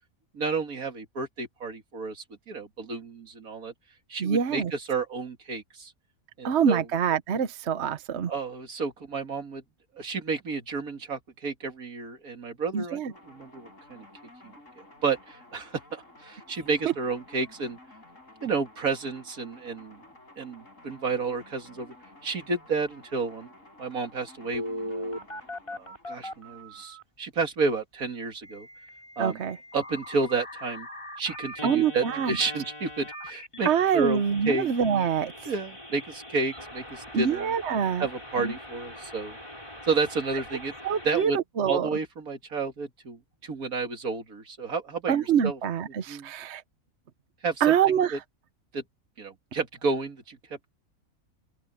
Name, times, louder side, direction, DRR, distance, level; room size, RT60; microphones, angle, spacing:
voice 1, 0.3-3.7 4.1-5.9 6.4-6.9 8.3-9.6 10.0-14.1 15.0-17.8 18.4-20.0 20.4-21.9 22.2-23.5 23.8-25.2 25.7-28.7 29.2-29.4 29.7-30.9 31.2-34.7 35.4-37.5 38.0-39.4 39.9-40.7 41.0-41.4 41.7-45.6 46.1-46.3 47.4-47.8 48.1-48.2 48.7-48.8 49.2-50.7, right 4 dB, 80° right, 2.6 m, -31 dB
voice 2, 4.2-4.7 6.4-8.3 12.7-13.1 29.2-29.6 31.6-32.4 33.6-35.3 37.1-38.1 38.4-38.5 40.8-41.9 45.1-46.6 47.6-48.2, right 7 dB, 55° right, 1.1 m, -25 dB
sound 1, 13.1-26.9, left 2 dB, 60° left, 8.1 m, -53 dB
Telephone, 24.5-27.0 28.4-41.3, left 1 dB, 20° left, 6.9 m, -41 dB
open air
omnidirectional pair, 1.5 m